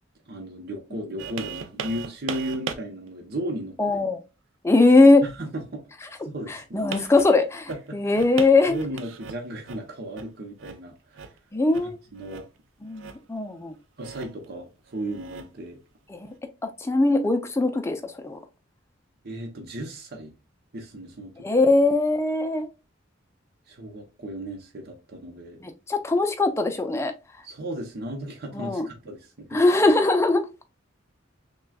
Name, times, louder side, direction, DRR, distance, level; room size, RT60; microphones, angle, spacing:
voice 1, 0.3-3.8 5.2-5.9 6.2-7.1 7.7-8.2 8.7-11.3 12.1-12.5 14.0-15.8 19.2-20.3 20.7-21.3 23.7-25.6 27.4-29.6, right 1 dB, 55° right, 0.8 m, -35 dB
sound 1, 1.2-2.8 3.3-3.4 6.8-9.8 10.2-10.3 10.6-10.8 11.1-11.4 11.7-11.9 12.2-12.6 12.9-13.4 14.0-14.5 14.9-15.7 16.3-16.4, right 6 dB, 75° right, 0.5 m, -37 dB
voice 2, 3.8-4.2 4.6-5.2 6.7-8.8 11.5-12.0 12.8-13.8 16.1-16.3 16.6-18.4 21.4-22.7 25.6-27.1 28.5-28.9 29.5-30.5, left 2 dB, 15° left, 0.5 m, -20 dB
5.9 x 2.3 x 2.3 m
head